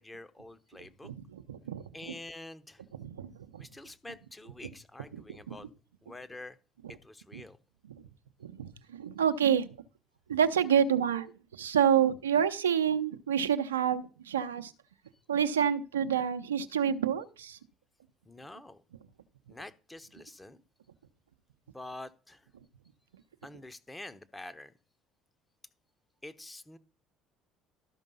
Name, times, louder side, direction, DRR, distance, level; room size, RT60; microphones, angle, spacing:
voice 1, 0.0-1.1 1.9-2.8 3.6-5.7 6.0-6.6 6.9-7.6 18.2-18.8 19.5-20.6 21.7-22.5 23.4-24.7 26.2-26.8, left 2 dB, 15° left, 12 dB, 1.1 m, -47 dB
voice 2, 1.0-2.1 3.0-3.7 5.1-5.7 6.8-6.9 7.3-7.4 7.8-8.1 8.4-9.8 10.3-14.7 15.3-17.6, right 8 dB, 80° right, 10 dB, 0.7 m, -29 dB
12.5 x 5.2 x 5.5 m, 0.37 s
figure-of-eight pair, 55°, 0 cm